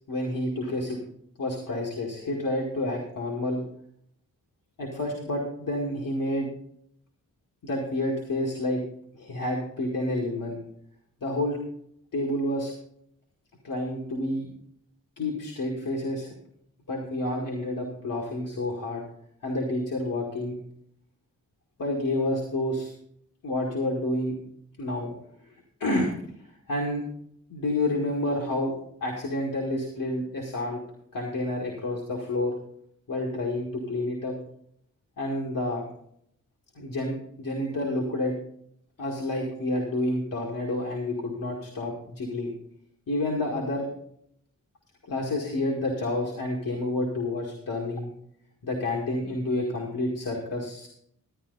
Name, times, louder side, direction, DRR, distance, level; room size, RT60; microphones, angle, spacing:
voice 1, 0.1-1.0 1.4-3.6 4.8-6.5 7.6-8.8 9.1-10.6 11.2-11.6 12.1-12.7 13.6-14.5 15.2-16.3 16.9-19.0 19.4-20.6 21.8-22.9 23.4-24.3 24.8-25.1 25.4-25.5 25.8-26.1 26.7-27.0 27.5-30.8 31.1-32.5 33.1-34.3 35.2-35.8 36.8-38.3 39.0-42.5 43.1-43.9 45.0-48.1 48.6-50.9, left 1 dB, 75° left, -2 dB, 2.1 m, -29 dB
12.0 x 9.6 x 4.0 m, 0.70 s
cardioid pair, 55°, 33 cm